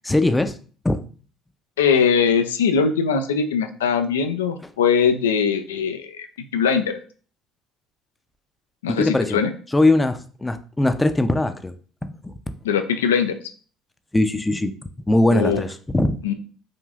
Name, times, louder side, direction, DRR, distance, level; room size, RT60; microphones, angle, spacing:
voice 1, 0.0-0.5 0.8-1.0 8.9-9.4 9.7-11.7 12.2-12.3 14.1-14.7 15.1-16.2, left 2 dB, 15° left, 9 dB, 0.5 m, -20 dB
voice 2, 1.8-6.3 6.5-7.0 8.8-9.5 12.6-13.4 15.3-15.6 16.2-16.3, left 6 dB, 85° left, 8 dB, 0.4 m, -21 dB
4.9 x 2.6 x 2.4 m, 0.41 s
hypercardioid pair, 60°, 0 cm